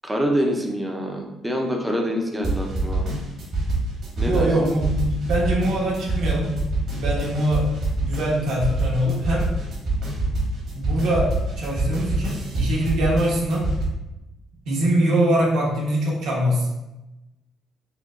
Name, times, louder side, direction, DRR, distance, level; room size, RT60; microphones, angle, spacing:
voice 1, 0.0-3.1 4.2-4.5, equal, 5° right, 1 dB, 0.4 m, -25 dB
sound 1, 2.4-13.8, right 2 dB, 50° right, 1.2 m, -25 dB
voice 2, 4.2-6.5 7.0-7.7 8.0-9.5 10.7-11.3 11.6-13.6 14.6-16.7, right 1 dB, 65° right, -4 dB, 1.0 m, -23 dB
4.6 x 2.2 x 2.4 m, 0.97 s
cardioid pair, 170°, 0 cm